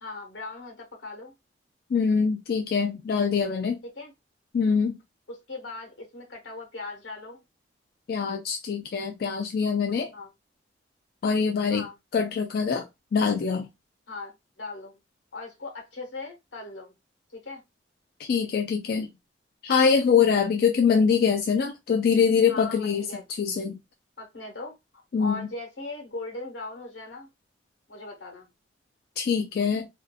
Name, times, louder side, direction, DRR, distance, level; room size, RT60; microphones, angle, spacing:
voice 1, 0.0-1.3 3.9-4.1 5.3-7.4 10.1-10.3 11.7-12.0 14.1-14.3 14.6-15.0 15.3-16.9 17.3-17.6 22.5-23.2 24.2-27.3 27.9-28.5, left 3 dB, 85° left, 1.1 m, -39 dB
voice 2, 1.9-3.8 4.5-5.0 8.1-10.1 11.2-11.9 12.1-12.9 13.1-13.7 18.2-19.1 19.6-23.8 25.1-25.5 29.2-29.9, left 6 dB, 55° left, 0.3 m, -24 dB
2.6 x 2.4 x 2.2 m
head